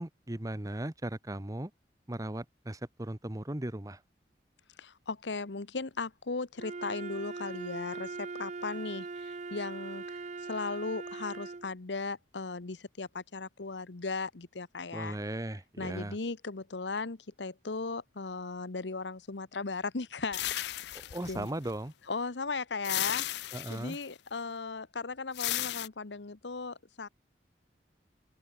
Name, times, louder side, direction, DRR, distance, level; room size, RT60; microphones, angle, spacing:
voice 1, 0.0-1.7 2.1-4.0 14.9-16.2 20.9-21.9 23.5-24.0, right 1 dB, 20° right, 1.1 m, -37 dB
voice 2, 4.8-15.2 15.8-21.5 22.1-27.1, left 4 dB, 85° left, 1.1 m, -37 dB
Wind instrument woodwind instrument, 6.6-11.7, right 4 dB, 40° right, 0.6 m, -41 dB
sound 1, 20.3-21.8 22.8-24.0 25.3-25.9, left 14 dB, 70° left, 0.4 m, -34 dB
open air
head